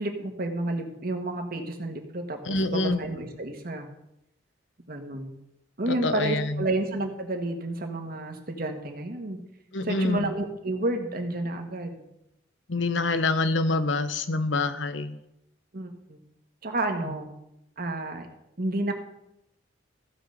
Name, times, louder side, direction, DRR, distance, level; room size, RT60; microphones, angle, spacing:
voice 1, 0.0-3.9 4.9-5.3 5.8-9.4 9.8-12.0 15.7-16.2 16.6-17.3 17.8-18.3 18.6-18.9, right 2 dB, 50° right, 5 dB, 1.5 m, -30 dB
voice 2, 2.5-3.0 5.9-6.7 9.7-10.3 12.7-15.2, left 3 dB, 80° left, 11 dB, 0.9 m, -26 dB
15.0 x 5.0 x 6.6 m, 0.83 s
head